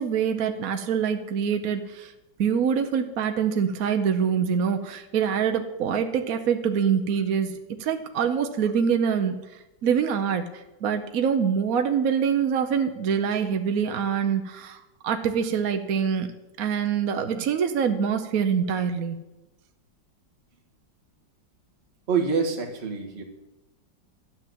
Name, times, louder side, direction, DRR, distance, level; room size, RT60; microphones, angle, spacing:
voice 1, 0.0-2.1 2.4-7.5 7.8-9.4 9.8-16.3 16.6-19.2, right 7 dB, 55° right, 6 dB, 1.1 m, -25 dB
voice 2, 22.1-23.2, right 5 dB, 35° right, 2 dB, 1.8 m, -26 dB
13.0 x 8.6 x 7.7 m, 1.0 s
omnidirectional pair, 2.0 m